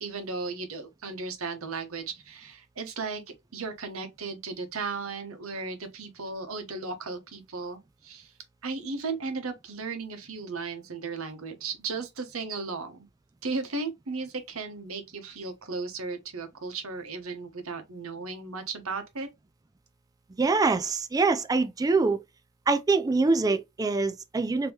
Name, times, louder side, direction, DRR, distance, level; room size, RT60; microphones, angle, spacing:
voice 1, 0.0-3.2 3.5-8.3 8.6-13.1 13.4-19.3, right 4 dB, 90° right, 1.0 m, -35 dB
voice 2, 20.4-22.2 22.7-24.7, right 3 dB, 20° right, 0.3 m, -24 dB
3.5 x 3.0 x 2.9 m
head